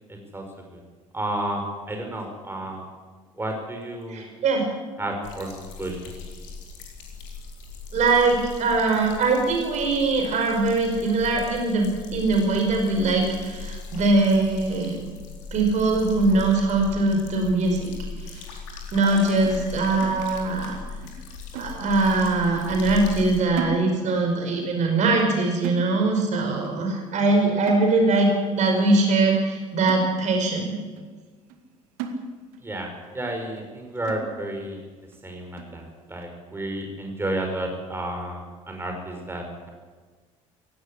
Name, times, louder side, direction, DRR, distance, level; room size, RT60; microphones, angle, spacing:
voice 1, 0.1-0.4 0.7-0.8 1.1-2.8 3.4-4.2 5.0-6.2 32.6-34.8 35.2-39.7, right 1 dB, 15° right, 3 dB, 5.2 m, -32 dB
voice 2, 4.1-4.6 7.9-15.0 15.5-17.9 18.3-18.4 18.9-20.7 21.5-28.3 28.6-30.8, right 3 dB, 45° right, 3 dB, 5.2 m, -22 dB
sound 1, 5.2-23.4, left 4 dB, 65° left, 4.3 m, -38 dB
sound 2, 19.4-20.8 21.0-21.3 21.5-22.2 22.5-22.8 23.1-24.3 24.6-24.8 25.1-25.4 25.6-26.3 26.6-26.9 27.2-27.4 27.7-28.3 28.8-28.9 29.3-29.5 29.9-30.6 31.0-31.1 31.5-31.7 32.0-32.7 33.0-33.1 33.6-33.7 34.1-34.6 35.1-35.2 35.6-35.8, right 4 dB, 60° right, 2.0 m, -37 dB
17.5 x 17.0 x 9.9 m, 1.4 s
figure-of-eight pair, 55°, 17 cm